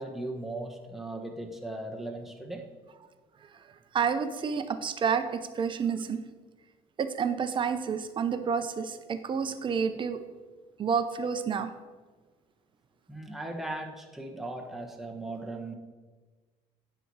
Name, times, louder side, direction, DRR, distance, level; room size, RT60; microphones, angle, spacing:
voice 1, 0.0-2.7 13.1-15.7, right 2 dB, ahead, 2 dB, 1.0 m, -38 dB
voice 2, 3.9-6.2 7.0-10.2 10.8-11.7, right 6 dB, 35° right, 11 dB, 0.6 m, -29 dB
9.9 x 4.2 x 4.7 m, 1.4 s
cardioid pair, 100°, 14 cm